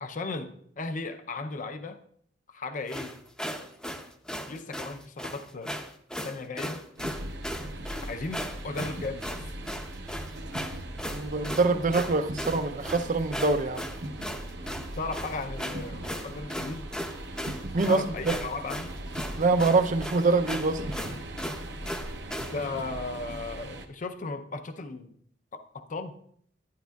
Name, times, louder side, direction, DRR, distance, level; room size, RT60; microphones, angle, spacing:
voice 1, 0.0-2.0 2.5-3.2 4.5-5.7 6.2-6.8 8.1-9.4 15.0-16.9 17.9-18.9 22.4-25.2 25.5-26.1, left 3 dB, 45° left, 0.5 m, -36 dB
sound 1, 2.9-22.6, equal, 5° left, 0.6 m, -37 dB
sound 2, 7.0-23.9, right 1 dB, 65° right, 0.9 m, -39 dB
voice 2, 11.1-13.9 17.7-18.4 19.4-20.8, right 3 dB, 45° right, 0.5 m, -25 dB
11.5 x 10.0 x 2.3 m
head